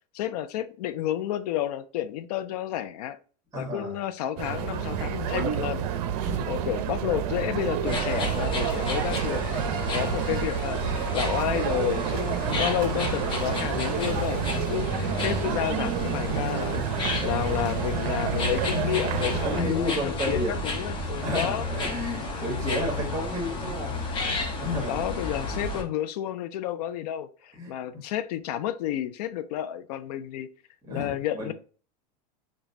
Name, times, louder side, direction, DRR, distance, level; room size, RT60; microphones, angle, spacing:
voice 1, 0.1-3.2 3.5-5.9 6.5-16.8 17.2-21.7 22.7-22.9 24.9-30.5 30.9-31.5, left 11 dB, 70° left, 0.4 m, -31 dB
voice 2, 3.5-4.0 6.2-6.4 19.4-20.6 21.2-24.3 24.6-25.0 27.6-28.0 30.9-31.5, left 1 dB, 15° right, 1.4 m, -31 dB
sound 1, 4.4-19.6, right 9 dB, 65° right, 0.5 m, -29 dB
sound 2, 7.8-25.8, left 2 dB, 25° left, 0.7 m, -32 dB
5.0 x 2.2 x 2.6 m
supercardioid pair, 125°, 21 cm